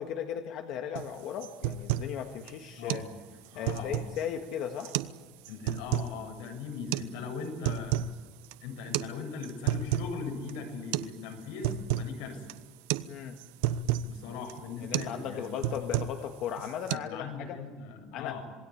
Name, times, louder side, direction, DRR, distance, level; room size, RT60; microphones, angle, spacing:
voice 1, 0.0-3.0 3.5-4.9 13.1-13.4 14.8-17.6 18.1-18.4, left 9 dB, 45° left, 5 dB, 1.8 m, -36 dB
sound 1, 1.0-1.1 1.4-2.2 2.5-2.6 2.9-3.1 3.5-4.2 4.8-5.2 5.5-6.1 6.9-7.1 7.5-8.2 8.4-8.6 8.9-9.1 9.4-10.2 10.5-10.6 10.9-11.2 11.4-12.1 12.5-12.7 12.9-13.1 13.4-14.1 14.5-14.7 14.9-15.2 15.4-16.3 16.6-17.0, right 11 dB, 90° right, 1.0 m, -31 dB
voice 2, 3.5-4.1 5.5-8.0 8.6-12.5 14.0-15.9 16.9-18.4, left 5 dB, 85° left, 4 dB, 7.0 m, -40 dB
27.0 x 20.5 x 8.7 m, 1.4 s
cardioid pair, 170°, 0 cm